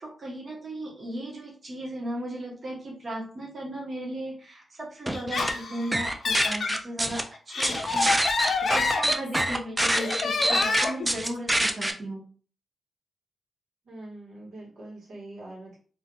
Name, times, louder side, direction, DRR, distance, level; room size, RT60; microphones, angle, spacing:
voice 1, 0.0-12.2, right 1 dB, 40° right, -3 dB, 1.1 m, -36 dB
Laughter, 5.1-6.8 7.3-9.5 9.9-11.1, left 4 dB, 60° left, 0.4 m, -28 dB
sound 1, 5.1-5.5 5.9-7.2 7.6-11.9, right 1 dB, 15° right, 0.4 m, -25 dB
voice 2, 13.8-15.8, right 2 dB, 90° right, -4 dB, 1.5 m, -43 dB
2.7 x 2.4 x 3.7 m, 0.41 s
wide cardioid pair, 130°, 0 cm